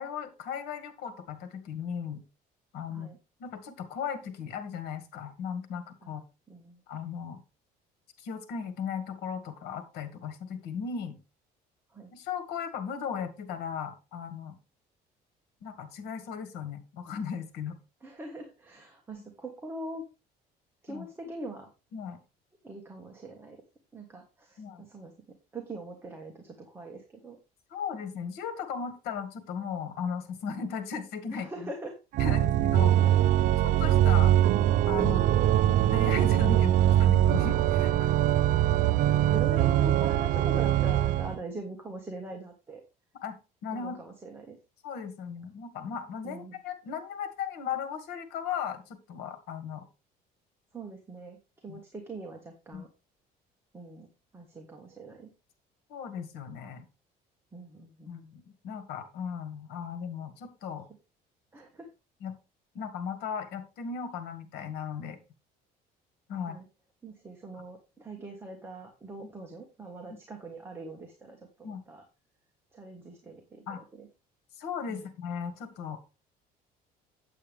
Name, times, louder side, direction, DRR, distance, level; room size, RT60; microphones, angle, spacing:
voice 1, 0.0-2.2 2.7-3.1 3.4-6.2 6.9-7.4 8.2-11.2 12.1-14.6 15.6-17.8 20.9-21.1 21.9-22.2 24.6-24.8 27.7-31.5 32.2-33.1 33.6-34.3 34.9-35.3 35.9-38.1 43.2-44.0 44.8-49.9 51.7-51.8 52.7-52.8 55.9-56.8 58.1-60.9 62.2-62.3 62.7-65.2 66.3-66.6 71.6-71.8 73.7-73.8 74.6-76.0, left 7 dB, 75° left, 9 dB, 1.9 m, -37 dB
voice 2, 6.5-6.8 11.9-12.1 18.0-20.1 20.8-21.7 22.6-23.6 23.9-25.1 25.5-27.4 31.3-32.3 35.3-35.6 35.9-37.0 39.1-42.8 43.7-44.6 46.2-46.6 50.7-52.9 53.7-54.1 54.3-55.3 57.5-58.1 61.5-61.9 66.4-66.7 67.0-72.0 72.7-74.1 74.9-75.1, right 2 dB, 15° right, 1 dB, 1.6 m, -42 dB
Organ, 32.1-41.4, right 12 dB, 55° right, 0.4 m, -23 dB
8.4 x 8.3 x 3.5 m, 0.28 s
cardioid pair, 150°, 17 cm